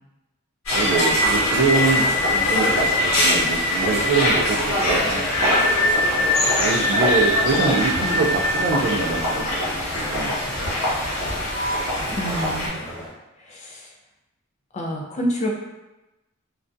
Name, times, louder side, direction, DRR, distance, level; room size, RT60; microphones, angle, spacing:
sound 1, 0.7-12.7, left 1 dB, 80° left, 0.9 m, -22 dB
voice 1, 0.7-5.3 6.6-10.4, right 4 dB, 55° right, 2 dB, 0.3 m, -24 dB
sound 2, 0.8-13.1, equal, 10° right, 1.1 m, -36 dB
voice 2, 12.1-12.7 13.4-13.9 14.7-15.5, equal, 30° left, -1 dB, 0.3 m, -28 dB
2.3 x 2.1 x 2.5 m, 0.99 s
head